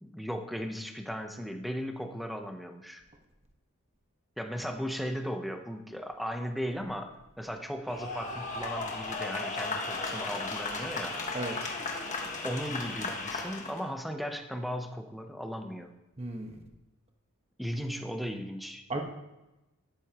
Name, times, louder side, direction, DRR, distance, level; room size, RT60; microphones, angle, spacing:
voice 1, 0.0-3.0 4.4-11.2 12.4-15.9 17.6-19.0, equal, ahead, 4 dB, 0.9 m, -36 dB
sound 1, 7.9-13.8, left 3 dB, 35° left, 1.6 m, -35 dB
voice 2, 11.3-11.7 16.2-16.6 18.9-19.0, right 2 dB, 30° right, 2 dB, 1.5 m, -35 dB
13.0 x 12.5 x 3.1 m, 0.98 s
head